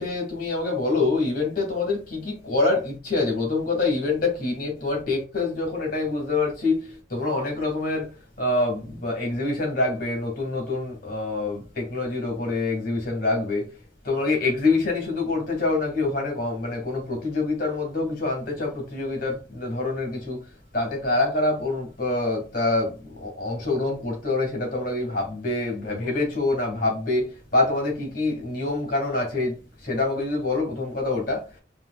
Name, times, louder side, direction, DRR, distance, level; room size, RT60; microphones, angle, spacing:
voice 1, 0.0-8.1 8.4-13.7 14.0-31.6, left 3 dB, 55° left, 2.4 m, -26 dB
5.5 x 3.2 x 2.6 m
head